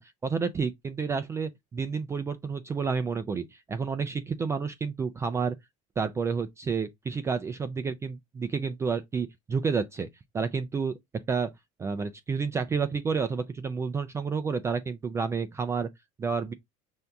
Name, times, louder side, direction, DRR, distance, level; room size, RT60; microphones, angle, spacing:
voice 1, 0.0-5.6 6.0-10.1 10.3-11.0 11.3-11.5 11.8-15.9 16.2-16.5, right 5 dB, 15° right, 0.3 m, -30 dB
5.8 x 2.7 x 3.3 m
cardioid pair, 150°, 17 cm